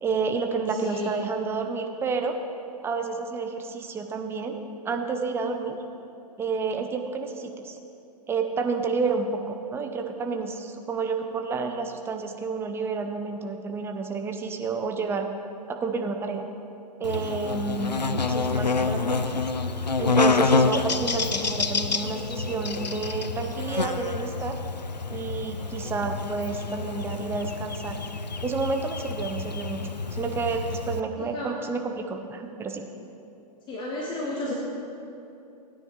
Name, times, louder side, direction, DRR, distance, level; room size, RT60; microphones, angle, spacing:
voice 1, 0.0-2.3 2.8-5.8 6.4-7.8 8.3-15.3 15.7-16.5 17.0-19.4 20.0-24.6 25.1-28.0 28.4-29.8 30.1-32.8, right 4 dB, 10° right, 4 dB, 0.7 m, -30 dB
voice 2, 0.8-1.1 17.7-18.0 31.3-31.5 33.7-34.5, left 3 dB, 20° left, -3 dB, 1.2 m, -32 dB
Buzz, 17.0-31.0, left 4 dB, 85° left, 0.5 m, -28 dB
16.5 x 9.5 x 3.2 m, 2.7 s
figure-of-eight pair, 110°, 21 cm